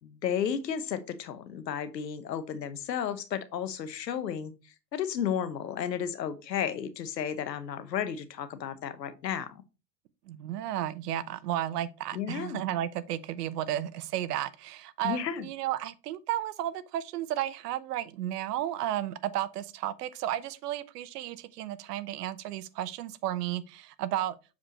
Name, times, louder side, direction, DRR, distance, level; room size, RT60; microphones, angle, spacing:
voice 1, 0.0-9.6 12.1-12.6 15.0-15.5, left 8 dB, 85° left, 0.9 m, -33 dB
voice 2, 10.3-24.4, right 12 dB, 70° right, 0.7 m, -33 dB
6.8 x 5.2 x 3.0 m
hypercardioid pair, 90°, 49 cm